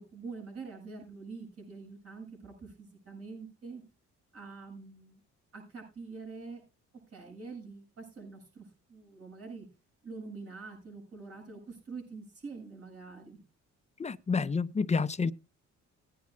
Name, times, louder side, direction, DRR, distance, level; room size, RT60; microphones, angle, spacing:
voice 1, 0.0-3.8 4.3-5.2 5.5-6.6 7.1-9.7 10.0-13.4, right 4 dB, 50° right, 7.3 m, -45 dB
voice 2, 14.0-15.3, left 4 dB, 25° left, 0.6 m, -29 dB
20.0 x 9.4 x 2.2 m
cardioid pair, 90°, 30 cm